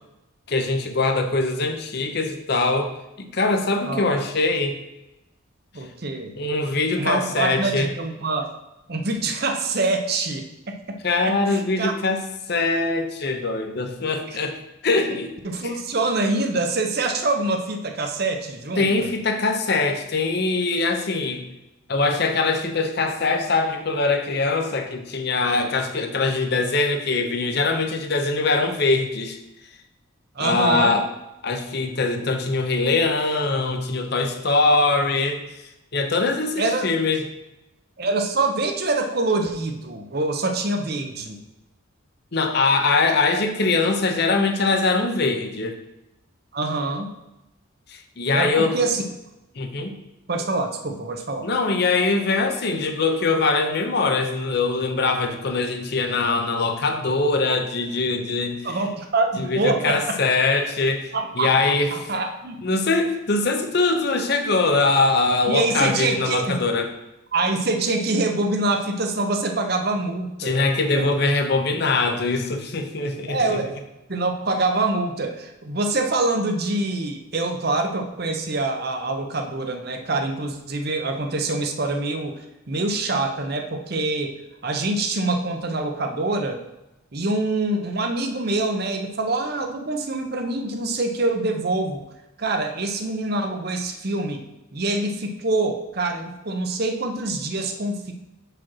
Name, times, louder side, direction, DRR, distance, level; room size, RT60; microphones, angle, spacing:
voice 1, 0.5-2.9 3.2-4.8 6.4-7.9 11.0-14.6 14.8-15.3 15.6-15.8 18.8-21.4 21.9-29.4 30.4-31.1 31.4-35.4 35.9-37.2 42.3-45.8 47.9-48.8 49.5-49.9 51.4-58.8 59.4-62.0 62.6-66.9 70.4-73.6, left 3 dB, 50° left, 6 dB, 0.7 m, -22 dB
voice 2, 5.7-6.3 6.9-8.5 8.9-11.0 11.2-11.9 14.3-14.4 15.4-19.1 30.4-31.0 36.6-36.9 38.0-41.4 46.5-47.1 48.3-49.0 50.3-51.5 58.6-60.2 61.1-61.5 61.9-62.6 65.5-66.6 67.3-70.6 70.9-71.1 73.3-73.7 74.1-84.4 84.6-86.6 87.1-92.0 92.4-94.4 94.7-98.1, right 2 dB, 50° right, 5 dB, 0.7 m, -25 dB
4.9 x 4.4 x 6.0 m, 0.92 s
head